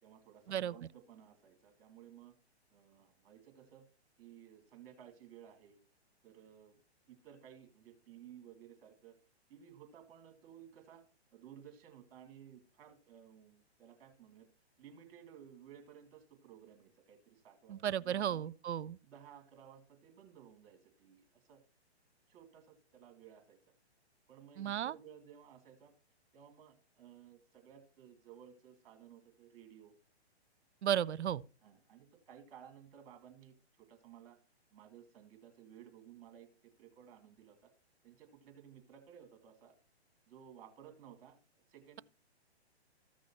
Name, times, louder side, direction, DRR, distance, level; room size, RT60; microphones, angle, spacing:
voice 1, 0.0-2.3 2.7-3.9 4.2-5.8 6.2-6.8 7.1-9.2 9.5-11.1 11.3-14.5 14.8-18.5 19.0-21.6 22.3-23.6 24.3-25.9 26.3-29.9 31.6-34.4 34.7-37.7 38.0-39.7 40.3-42.0, right 9 dB, 30° right, 2.4 m, -57 dB
voice 2, 17.7-19.0 24.6-24.9 30.8-31.4, right 10 dB, 85° right, 0.5 m, -34 dB
14.5 x 6.2 x 2.9 m
hypercardioid pair, 145°, 33 cm